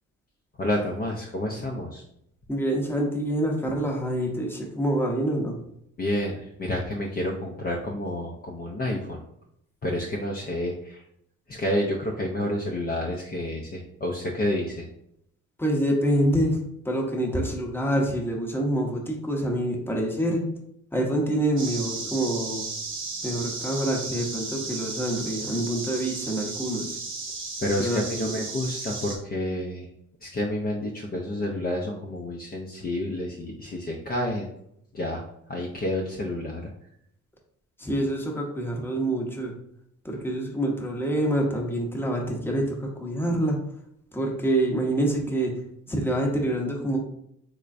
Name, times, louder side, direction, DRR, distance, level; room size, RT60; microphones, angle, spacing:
voice 1, 0.6-2.0 6.0-9.2 9.8-11.0 11.5-14.9 27.6-29.9 30.2-34.5 34.9-36.7, left 1 dB, 30° left, -1 dB, 0.6 m, -29 dB
voice 2, 2.5-5.6 15.6-16.6 16.8-20.4 20.9-22.7 23.2-27.0 27.8-28.5 37.8-39.5 40.0-43.6 44.1-45.5 45.9-47.0, right 1 dB, 5° left, 0 dB, 0.9 m, -26 dB
sound 1, 21.6-29.2, right 3 dB, 40° right, 0.9 m, -34 dB
3.7 x 3.3 x 2.5 m, 0.75 s
cardioid pair, 90°, 30 cm